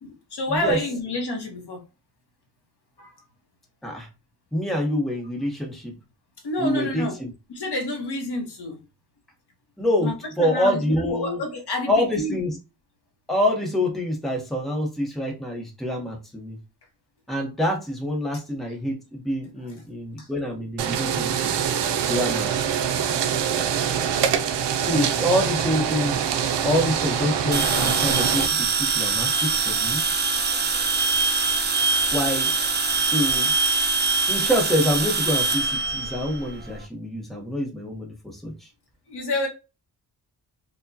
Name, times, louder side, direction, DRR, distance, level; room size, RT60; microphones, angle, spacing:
voice 1, 0.0-1.8 3.0-3.2 6.4-7.2 7.5-8.8 10.0-10.1 10.4-12.4 19.6-19.7 20.2-20.3 39.1-39.5, left 2 dB, 65° left, 1.0 m, -29 dB
voice 2, 4.5-5.9 6.6-7.3 9.8-11.4 11.9-12.6 13.3-16.6 17.3-21.5 22.1-22.8 24.8-26.2 26.6-30.0 32.1-32.5 33.0-33.5 34.3-38.7, equal, ahead, 0.8 m, -26 dB
sound 1, 20.8-28.5, right 8 dB, 80° right, 0.5 m, -24 dB
sound 2, 27.5-36.8, right 4 dB, 25° right, 0.4 m, -23 dB
4.7 x 2.1 x 2.6 m
wide cardioid pair, 135°, 42 cm